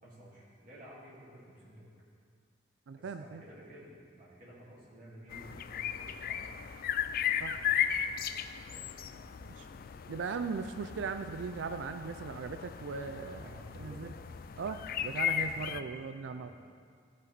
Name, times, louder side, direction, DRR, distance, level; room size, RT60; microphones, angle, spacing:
voice 1, 0.0-1.9 3.0-6.7 8.7-9.3 13.3-14.0 15.5-16.5, right 1 dB, 45° right, -8 dB, 2.5 m, -53 dB
voice 2, 2.9-3.4 7.4-7.6 9.6-9.7 10.1-13.5 13.8-14.1 14.6-16.5, right 5 dB, 75° right, 8 dB, 0.4 m, -38 dB
sound 1, 5.3-15.8, left 9 dB, 50° left, 0.3 m, -36 dB
16.5 x 5.5 x 4.0 m, 2.1 s
head